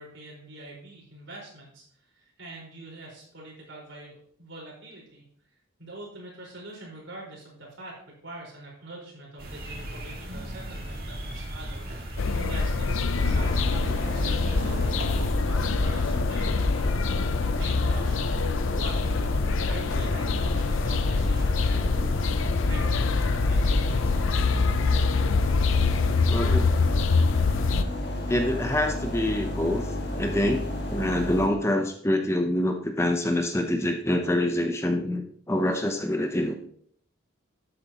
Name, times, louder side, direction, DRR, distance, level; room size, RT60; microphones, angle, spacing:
voice 1, 0.0-5.2 5.8-13.6 14.1-15.0 15.4-17.0 17.4-18.3 18.7-19.0 19.6-21.9 22.7-24.4, right 1 dB, 65° right, -3 dB, 4.5 m, -44 dB
sound 1, 9.4-15.3, right 1 dB, 50° right, 2.0 m, -37 dB
sound 2, 12.2-27.8, left 4 dB, 80° left, 0.5 m, -25 dB
sound 3, 13.1-31.5, left 1 dB, 55° left, 1.8 m, -32 dB
voice 2, 26.3-26.7 28.3-29.9 30.2-36.5, left 1 dB, 15° left, 5 dB, 0.6 m, -26 dB
12.5 x 8.4 x 2.9 m, 0.63 s
head